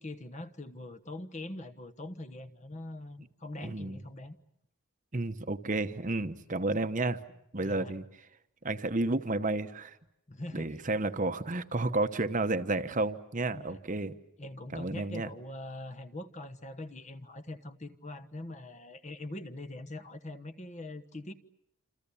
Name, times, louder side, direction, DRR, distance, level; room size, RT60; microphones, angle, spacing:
voice 1, 0.0-4.4 7.6-7.9 10.3-10.8 13.5-13.8 14.4-21.3, left 1 dB, 30° left, 11 dB, 1.2 m, -43 dB
voice 2, 3.6-4.0 5.1-7.2 7.5-8.0 8.6-10.0 10.5-14.1 14.7-15.3, right 2 dB, 35° right, 9 dB, 1.0 m, -31 dB
28.0 x 27.5 x 7.1 m, 0.78 s
head